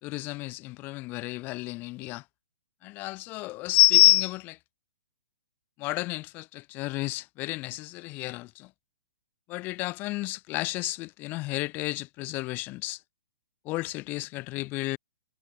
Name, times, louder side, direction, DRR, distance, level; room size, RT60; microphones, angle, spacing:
voice 1, 0.0-2.2 2.8-4.6 5.8-8.7 9.5-13.0 13.6-15.0, left 21 dB, 30° left, 2.8 m, -28 dB
figure-of-eight pair, 120°, 6 cm